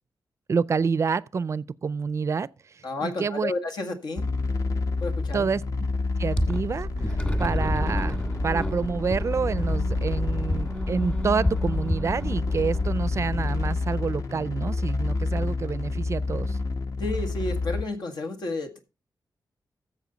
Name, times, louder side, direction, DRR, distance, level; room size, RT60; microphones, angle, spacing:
voice 1, 0.5-3.5 5.3-5.6 6.2-16.6, right 5 dB, 40° right, 0.4 m, -28 dB
voice 2, 2.8-4.3 5.0-5.5 17.0-18.8, left 2 dB, 80° left, 1.8 m, -31 dB
sound 1, 4.2-17.8, left 3 dB, 50° left, 1.1 m, -29 dB
sound 2, 6.4-13.7, left 1 dB, 20° left, 1.6 m, -30 dB
13.5 x 7.5 x 4.0 m
wide cardioid pair, 130°, 7 cm